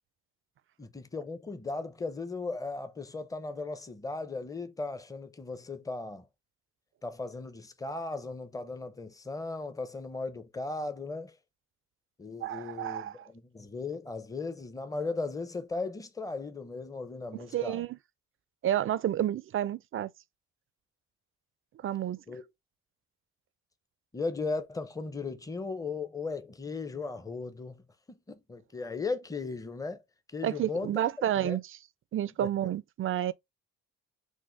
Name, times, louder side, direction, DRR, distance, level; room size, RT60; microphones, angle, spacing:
voice 1, 0.8-6.3 7.0-11.4 12.2-17.8 22.3-22.4 24.1-27.8 28.3-30.0 30.3-31.0 31.4-31.6 32.4-32.5, left 3 dB, 10° left, 0.6 m, -37 dB
voice 2, 12.4-13.3 17.3-18.0 18.6-20.1 21.8-22.2 30.4-31.8 32.1-33.3, right 11 dB, 45° right, 0.4 m, -30 dB
6.1 x 2.1 x 3.2 m
cardioid pair, 90°, 30 cm